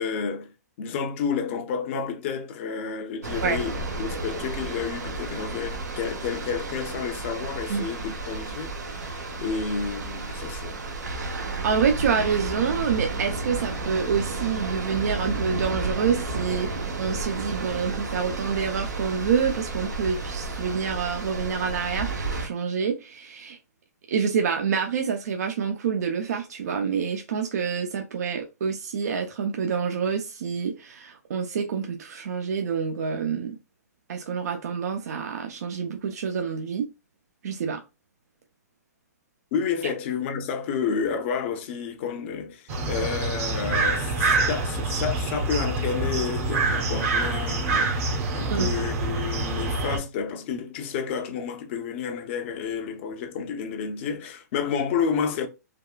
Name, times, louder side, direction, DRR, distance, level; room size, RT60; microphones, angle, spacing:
voice 1, 0.0-10.8 39.5-48.0 48.3-55.5, left 6 dB, 45° left, 0.6 m, -30 dB
sound 1, 3.2-22.5, right 3 dB, 80° right, 0.9 m, -32 dB
voice 2, 11.6-23.6 24.1-33.6 34.1-36.9 37.4-37.8 39.8-39.9 48.5-48.7, right 6 dB, 65° right, 0.5 m, -27 dB
sound 2, 42.7-50.0, right 3 dB, 45° right, 0.9 m, -26 dB
3.4 x 2.4 x 2.3 m
hypercardioid pair, 135°, 9 cm